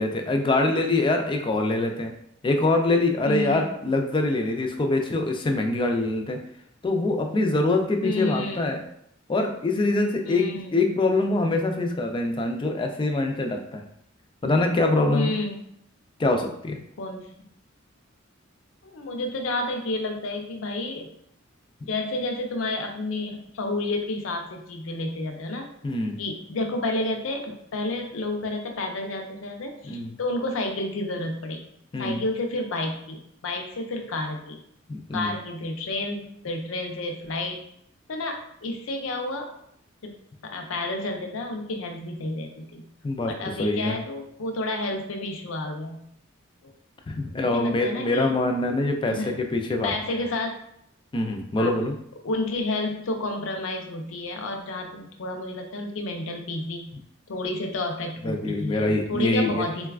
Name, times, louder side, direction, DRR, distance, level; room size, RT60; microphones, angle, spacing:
voice 1, 0.0-2.1 2.4-6.4 6.8-8.8 9.3-13.8 14.4-15.3 16.2-16.8 25.8-26.2 29.8-30.2 31.9-32.2 34.9-35.3 43.0-44.0 47.1-49.9 51.1-52.0 58.2-59.6, left 2 dB, 25° left, 4 dB, 0.3 m, -24 dB
voice 2, 3.3-3.6 8.0-8.8 10.2-10.8 15.1-15.6 17.0-17.3 18.8-21.1 21.9-25.7 26.2-31.7 32.0-34.6 35.1-37.6 38.1-39.5 40.0-40.1 40.4-42.9 43.2-46.0 46.6-46.7 47.3-48.3 49.1-49.3 49.8-50.6 51.6-51.8 52.2-56.9 57.3-59.9, left 2 dB, 85° left, 3 dB, 0.5 m, -30 dB
3.9 x 2.3 x 2.3 m, 0.71 s
head